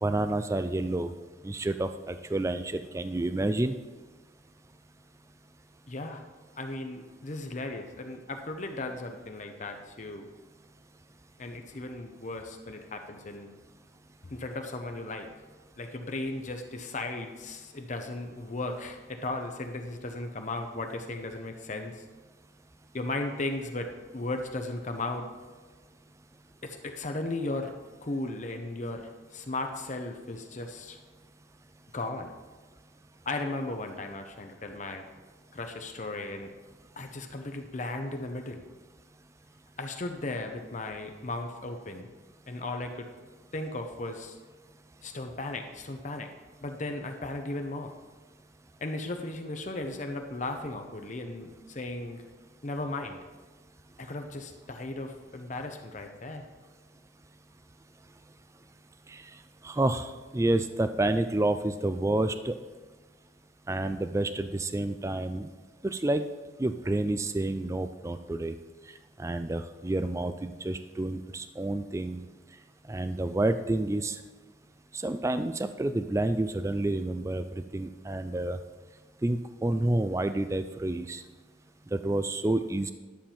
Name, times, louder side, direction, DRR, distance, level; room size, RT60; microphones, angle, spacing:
voice 1, 0.0-1.1 1.4-3.7 59.1-59.3 59.6-62.6 63.7-65.5 65.8-66.2 66.6-68.6 69.2-72.3 72.9-74.2 74.9-78.6 79.2-81.2 81.9-82.9, right 2 dB, 15° right, 10 dB, 0.3 m, -29 dB
voice 2, 5.9-6.2 6.6-10.3 11.4-13.5 14.2-15.3 15.8-22.0 22.9-25.3 26.6-27.7 28.0-31.0 31.9-32.3 33.3-35.0 35.5-36.5 37.0-38.6 39.8-42.1 42.5-43.1 43.5-44.4 45.0-46.3 46.6-47.9 48.8-52.2 52.6-53.2 54.0-56.5, left 2 dB, 40° left, 5 dB, 0.7 m, -36 dB
11.5 x 7.4 x 4.4 m, 1.4 s
head